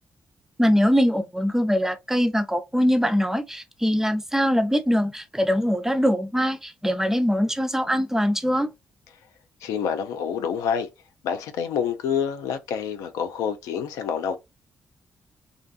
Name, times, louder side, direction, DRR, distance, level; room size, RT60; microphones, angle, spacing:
voice 1, 0.6-8.7, equal, 5° right, 0.5 m, -22 dB
voice 2, 9.6-10.9 11.2-14.4, left 7 dB, 85° left, 0.4 m, -27 dB
2.5 x 2.4 x 2.3 m
supercardioid pair, 50°, 6 cm